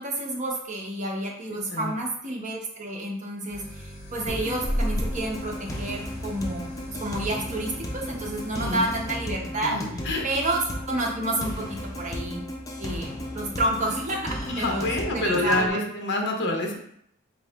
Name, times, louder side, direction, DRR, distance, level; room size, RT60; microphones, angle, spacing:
voice 1, 0.0-9.8 10.2-12.4 12.8-15.8, right 1 dB, 35° right, 0 dB, 0.8 m, -30 dB
voice 2, 1.5-1.9 8.5-8.8 9.7-10.2 14.5-16.8, left 2 dB, 55° left, 1 dB, 0.8 m, -27 dB
sound 1, 3.5-9.0, equal, 30° left, 1.2 m, -35 dB
sound 2, 4.3-15.7, left 1 dB, 15° left, 0.4 m, -35 dB
3.9 x 2.7 x 3.3 m, 0.68 s
head